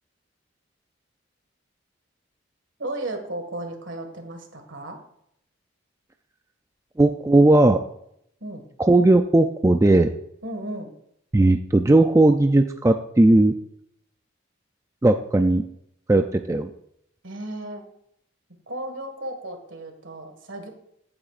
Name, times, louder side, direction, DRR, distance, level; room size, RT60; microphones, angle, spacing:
voice 1, 2.8-5.0 8.4-8.6 10.4-10.9 17.2-17.8 18.7-20.7, right 1 dB, 65° right, 5 dB, 1.8 m, -34 dB
voice 2, 7.0-7.8 8.8-10.1 11.3-13.5 15.0-15.6 16.1-16.7, right 2 dB, 15° right, 6 dB, 0.3 m, -17 dB
15.0 x 8.7 x 2.5 m, 0.74 s
head